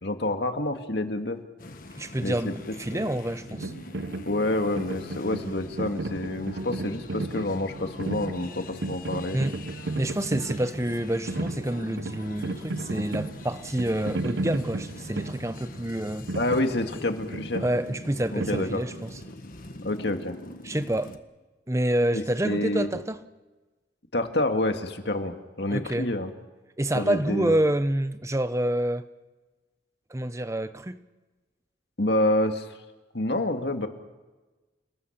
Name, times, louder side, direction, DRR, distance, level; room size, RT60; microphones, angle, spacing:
voice 1, 0.0-1.4 2.2-2.5 2.9-3.1 4.3-9.4 16.3-17.6 18.3-18.8 19.8-20.3 22.1-22.9 24.1-26.3 26.9-27.6 32.0-32.7 33.1-33.9, left 1 dB, 65° left, 2.1 m, -28 dB
sound 1, 1.6-21.2, left 2 dB, 50° left, 1.5 m, -43 dB
voice 2, 1.9-3.7 9.3-9.6 10.0-16.3 17.6-19.1 20.6-21.2 21.7-23.2 25.7-26.1 26.8-29.1 30.1-31.0, right 1 dB, 15° right, 0.9 m, -27 dB
sound 2, 3.5-19.3, right 2 dB, 75° right, 0.9 m, -35 dB
30.0 x 20.5 x 5.9 m
head